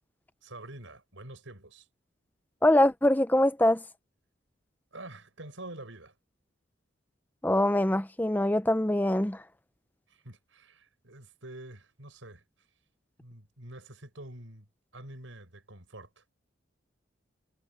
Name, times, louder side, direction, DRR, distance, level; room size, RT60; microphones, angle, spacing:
voice 1, 0.4-1.9 4.9-6.2 10.1-12.4 13.2-16.2, right 2 dB, 85° right, 6.0 m, -47 dB
voice 2, 2.6-3.8 7.4-9.4, left 1 dB, 10° left, 0.6 m, -23 dB
head